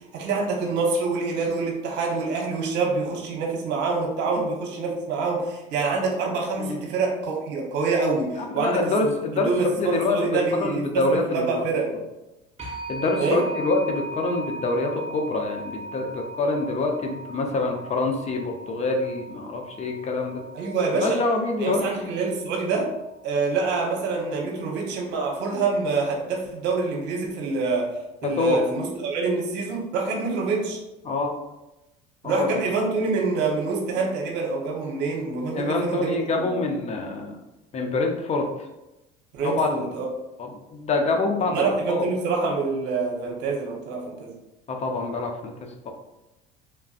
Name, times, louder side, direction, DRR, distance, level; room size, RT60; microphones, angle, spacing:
voice 1, 0.1-11.9 13.2-13.4 20.5-21.2 21.6-22.9 23.2-27.9 28.2-30.8 32.2-36.5 39.3-40.1 41.4-44.3, right 4 dB, 60° right, 0 dB, 1.0 m, -26 dB
voice 2, 8.4-11.6 11.9-12.0 12.9-20.4 20.9-21.9 28.2-28.6 31.0-31.4 32.2-32.5 35.5-37.4 37.7-38.5 39.4-39.9 40.4-42.0 44.7-45.9, left 3 dB, 35° left, 3 dB, 0.6 m, -26 dB
sound 1, 12.6-23.2, right 1 dB, 30° right, 0.7 m, -39 dB
3.4 x 2.4 x 2.4 m, 0.97 s
supercardioid pair, 85°, 20 cm